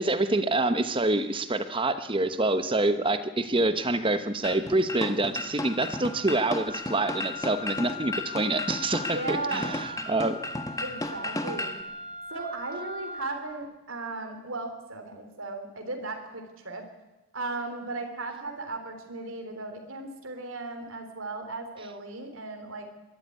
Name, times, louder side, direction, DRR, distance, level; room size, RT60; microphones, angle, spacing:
voice 1, 0.0-10.4, right 2 dB, 25° right, 10 dB, 1.0 m, -26 dB
sound 1, 4.4-11.8, left 1 dB, 15° left, 1.2 m, -34 dB
Wind instrument woodwind instrument, 5.6-13.4, left 2 dB, 75° left, 7.2 m, -40 dB
voice 2, 9.1-9.7 10.8-11.8 12.3-16.8 17.3-22.9, right 3 dB, 65° right, 5 dB, 3.5 m, -36 dB
22.0 x 12.5 x 9.4 m, 1.0 s
head